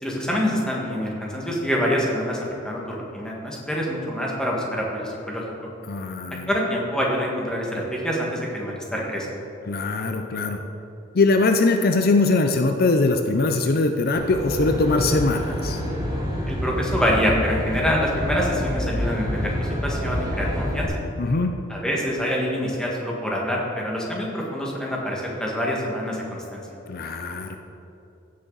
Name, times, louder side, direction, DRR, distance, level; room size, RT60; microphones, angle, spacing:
voice 1, 0.0-2.4 2.6-5.4 6.5-9.3 16.5-20.9 21.7-26.7, equal, 5° left, -3 dB, 1.7 m, -26 dB
voice 2, 5.9-6.5 9.7-10.6 11.1-15.8 21.2-21.5 26.9-27.6, left 3 dB, 50° left, 5 dB, 0.5 m, -21 dB
Aircraft, 14.1-20.9, equal, 20° right, 1.5 m, -27 dB
16.0 x 6.4 x 4.0 m, 2.9 s
head